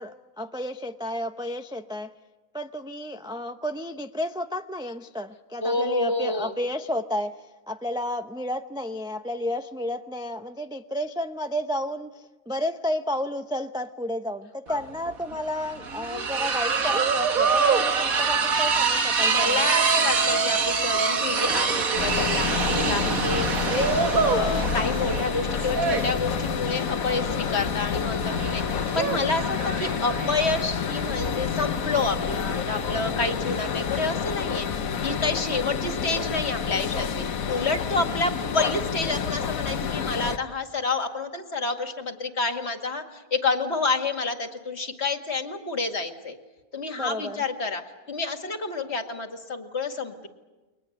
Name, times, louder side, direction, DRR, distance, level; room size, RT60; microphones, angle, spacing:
voice 1, 0.0-2.1 2.5-7.3 7.7-19.7 46.9-47.4, left 1 dB, 5° right, 7 dB, 0.5 m, -31 dB
voice 2, 5.6-6.5 14.7-14.8 19.3-46.4 46.7-47.8 48.1-50.3, left 3 dB, 45° left, 5 dB, 2.3 m, -29 dB
sound 1, 14.7-14.8 15.1-33.9, right 5 dB, 70° right, 1.9 m, -26 dB
sound 2, 22.0-40.4, left 7 dB, 70° left, 1.5 m, -29 dB
sound 3, 29.4-33.3, right 2 dB, 85° right, 6.1 m, -45 dB
30.0 x 22.5 x 7.9 m, 1.2 s
omnidirectional pair, 1.6 m